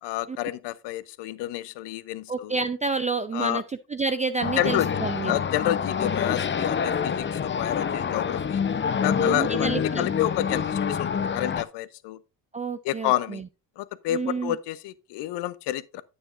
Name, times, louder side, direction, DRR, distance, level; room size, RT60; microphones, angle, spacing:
voice 1, 0.0-2.5 3.3-3.6 4.6-4.9 5.2-8.6 9.0-12.2 12.8-13.4 13.8-16.0, left 14 dB, 55° left, 0.8 m, -29 dB
voice 2, 2.3-3.6 3.9-5.3 9.2-10.0 12.5-13.4 14.1-14.6, right 4 dB, 15° right, 0.4 m, -29 dB
sound 1, 4.4-11.6, left 7 dB, 25° left, 0.7 m, -27 dB
9.4 x 9.0 x 2.5 m
hypercardioid pair, 55°, 50 cm